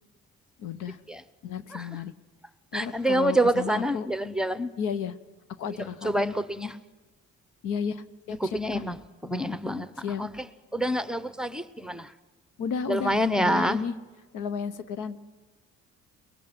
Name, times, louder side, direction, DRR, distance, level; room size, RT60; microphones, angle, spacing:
voice 1, 0.6-1.0 1.4-2.1 2.7-4.1 4.8-5.1 5.6-6.2 7.6-8.8 10.0-10.2 12.6-14.0 14.3-15.2, left 6 dB, 90° left, 14 dB, 1.0 m, -33 dB
voice 2, 2.7-4.7 6.0-6.8 8.5-9.0 9.2-9.9 10.2-10.3 10.7-12.1 12.9-13.8, right 1 dB, ahead, 13 dB, 0.8 m, -27 dB
23.0 x 20.0 x 6.1 m, 1.3 s
cardioid pair, 90°, 30 cm